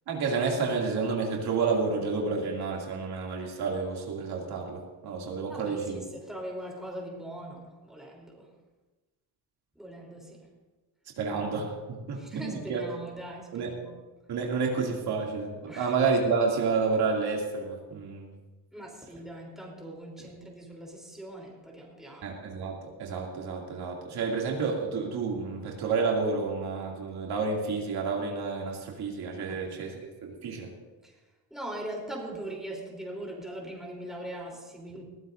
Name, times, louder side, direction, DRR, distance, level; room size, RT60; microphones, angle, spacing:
voice 1, 0.1-6.0 11.2-11.7 12.1-12.8 13.5-13.7 14.3-18.3 22.2-30.7, right 4 dB, 80° right, -1 dB, 2.7 m, -30 dB
voice 2, 5.5-8.5 9.8-10.5 12.2-14.0 15.7-15.9 18.7-22.3 29.5-29.7 31.0-31.2 31.5-35.0, right 1 dB, ahead, -2 dB, 3.5 m, -41 dB
20.5 x 15.0 x 2.7 m, 1.2 s
cardioid pair, 130°, 38 cm